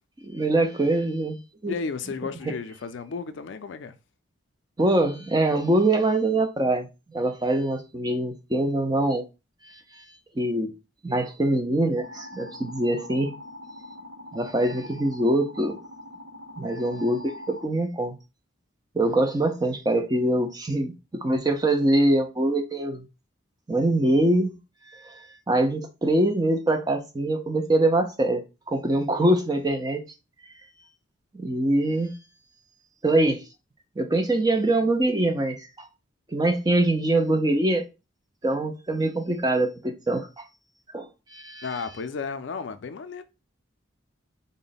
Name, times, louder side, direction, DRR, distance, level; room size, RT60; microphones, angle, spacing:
voice 1, 0.2-1.7 4.8-9.2 10.0-10.1 10.4-10.7 11.0-13.3 14.3-15.8 16.6-18.2 18.9-20.9 21.2-23.1 23.7-24.6 24.9-30.0 31.3-32.1 33.0-33.4 34.0-35.9 36.3-37.8 38.4-40.4 40.9-41.7, right 1 dB, 20° right, 0.5 m, -24 dB
voice 2, 1.7-3.9 41.6-43.2, left 4 dB, 65° left, 0.4 m, -33 dB
sound 1, 12.0-17.7, left 1 dB, 75° right, 0.8 m, -43 dB
3.7 x 2.1 x 3.9 m
head